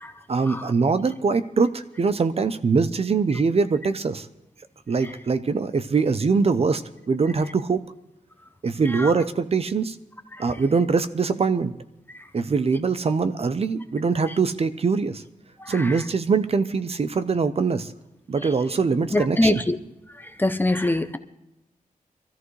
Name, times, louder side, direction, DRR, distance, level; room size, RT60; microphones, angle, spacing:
voice 1, 0.3-4.3 4.9-6.8 7.1-7.8 8.6-10.0 10.4-11.7 12.3-15.2 15.7-17.9 18.3-19.6, right 4 dB, 45° right, 11 dB, 0.6 m, -23 dB
voice 2, 15.6-16.0 18.4-18.8 19.1-19.8 20.1-21.2, left 1 dB, 15° left, 8 dB, 0.6 m, -25 dB
23.5 x 14.0 x 3.2 m, 0.88 s
wide cardioid pair, 175°, 14 cm